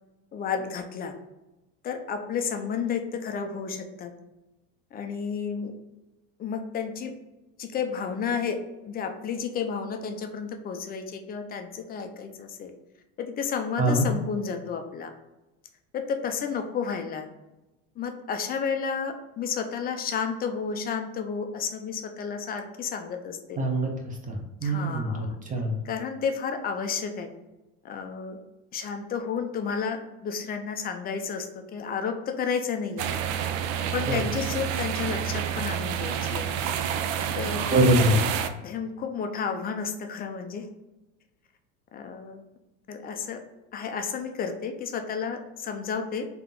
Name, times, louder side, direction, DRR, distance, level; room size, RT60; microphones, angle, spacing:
voice 1, 0.3-1.1 1.8-4.1 4.9-5.7 6.4-7.1 7.6-8.6 8.9-12.7 13.2-15.1 15.9-17.3 18.0-23.6 24.6-25.4 25.8-27.3 27.8-28.4 28.7-33.1 33.9-36.5 37.4-37.9 38.6-40.7 41.9-42.4 42.9-43.4 43.7-46.3, left 6 dB, 25° left, 6 dB, 0.4 m, -31 dB
voice 2, 23.6-25.8 34.1-34.2 37.7-38.2, right 1 dB, 20° right, 2 dB, 0.8 m, -24 dB
sound 1, 33.0-38.5, right 9 dB, 80° right, 0.5 m, -29 dB
3.5 x 2.9 x 3.6 m, 1.0 s
supercardioid pair, 120°, 38 cm